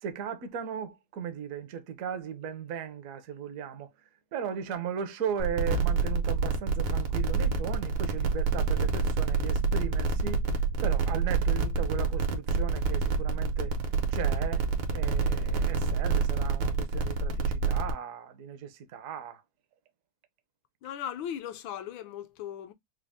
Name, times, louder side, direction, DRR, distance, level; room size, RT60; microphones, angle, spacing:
voice 1, 0.0-3.9 4.3-10.4 10.8-13.7 14.1-14.6 14.9-19.4, right 7 dB, 65° right, 0.8 m, -37 dB
sound 1, 5.4-17.9, right 4 dB, 80° right, 1.6 m, -27 dB
voice 2, 20.8-22.7, left 10 dB, 80° left, 1.4 m, -37 dB
5.0 x 2.1 x 3.4 m
omnidirectional pair, 2.2 m